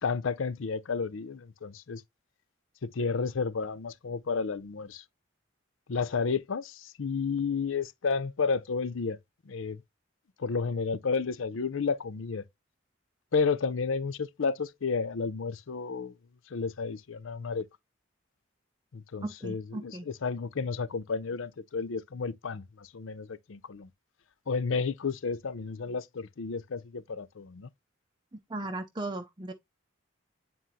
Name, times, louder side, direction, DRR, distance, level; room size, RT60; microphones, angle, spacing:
voice 1, 0.0-2.0 2.8-5.0 5.9-9.2 9.5-9.8 10.4-12.4 13.3-16.2 16.5-17.7 18.9-23.9 24.5-27.7, left 5 dB, 80° left, 0.6 m, -31 dB
voice 2, 19.2-20.1 28.3-29.5, right 2 dB, 25° right, 0.6 m, -37 dB
9.3 x 3.8 x 2.7 m
head